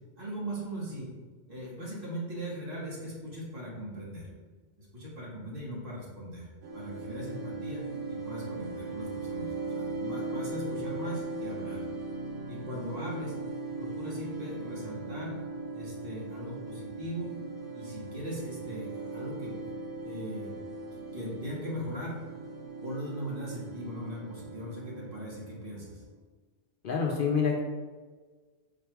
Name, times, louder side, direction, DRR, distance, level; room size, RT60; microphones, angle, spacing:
voice 1, 0.2-1.1 1.5-4.3 4.8-6.5 6.7-11.8 12.5-13.4 13.8-15.4 15.7-17.3 17.7-19.5 20.0-20.5 20.9-22.2 22.8-26.0, equal, 55° right, -5 dB, 1.4 m, -39 dB
sound 1, 6.6-26.2, right 2 dB, 70° right, 1.0 m, -39 dB
voice 2, 26.8-27.6, left 6 dB, 60° left, 0 dB, 0.7 m, -27 dB
4.7 x 2.3 x 4.5 m, 1.4 s
omnidirectional pair, 1.1 m